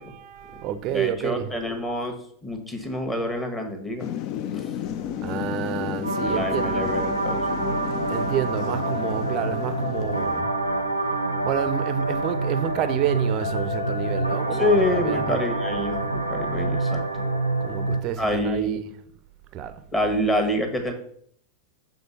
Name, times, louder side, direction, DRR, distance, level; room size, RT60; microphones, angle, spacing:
voice 1, 0.0-1.5 4.9-6.9 8.1-10.5 11.4-15.4 17.6-18.7 19.5-19.8, right 10 dB, 35° right, 0.5 m, -29 dB
voice 2, 0.9-2.2 2.4-4.1 4.5-4.7 6.3-7.8 14.5-17.3 18.2-18.8 19.9-20.9, left 1 dB, 10° left, 1.3 m, -27 dB
Thunder / Rain, 4.0-10.4, left 10 dB, 40° left, 0.4 m, -33 dB
sound 1, 6.0-18.0, right 2 dB, 85° left, 0.7 m, -26 dB
6.8 x 3.8 x 5.4 m
figure-of-eight pair, 90°, 0 cm